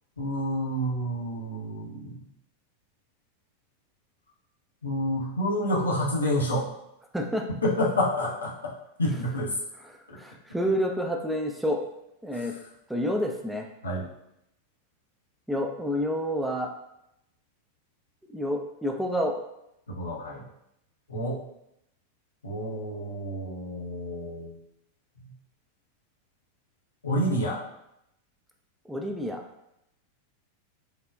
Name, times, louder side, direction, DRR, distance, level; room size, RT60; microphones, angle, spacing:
voice 1, 0.2-2.2 4.8-6.7 7.6-8.7 9.0-9.6 10.1-10.2 13.8-14.0 19.9-20.4 21.1-21.4 22.4-24.5 25.2-25.3 27.0-27.6, equal, 75° left, -3 dB, 0.6 m, -28 dB
voice 2, 7.1-7.5 9.1-9.2 9.8-11.8 12.2-12.5 12.9-13.7 15.5-16.7 18.3-19.4 28.9-29.4, equal, 5° right, 1 dB, 0.3 m, -29 dB
3.2 x 2.1 x 2.4 m, 0.80 s
figure-of-eight pair, 90°, 0 cm